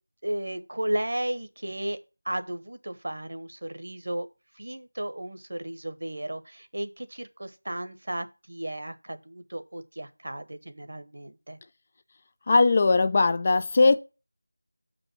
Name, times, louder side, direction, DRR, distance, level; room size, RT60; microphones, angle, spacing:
voice 1, 0.2-2.0 2.2-4.3 4.6-11.6, right 1 dB, 55° right, 1.1 m, -34 dB
voice 2, 12.5-14.0, left 3 dB, 25° left, 0.4 m, -20 dB
6.5 x 5.2 x 6.2 m
figure-of-eight pair, 175°, 0 cm